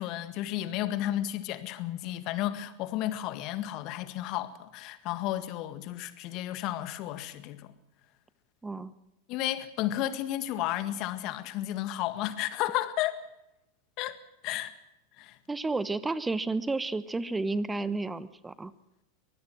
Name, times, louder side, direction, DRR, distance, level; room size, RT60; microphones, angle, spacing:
voice 1, 0.0-7.7 9.3-13.2 14.0-14.2 14.4-14.7 15.2-15.4, left 13 dB, 45° left, 1.7 m, -32 dB
voice 2, 8.6-8.9 15.5-18.7, right 3 dB, 10° right, 1.0 m, -31 dB
24.0 x 19.5 x 6.1 m
figure-of-eight pair, 85°, 0 cm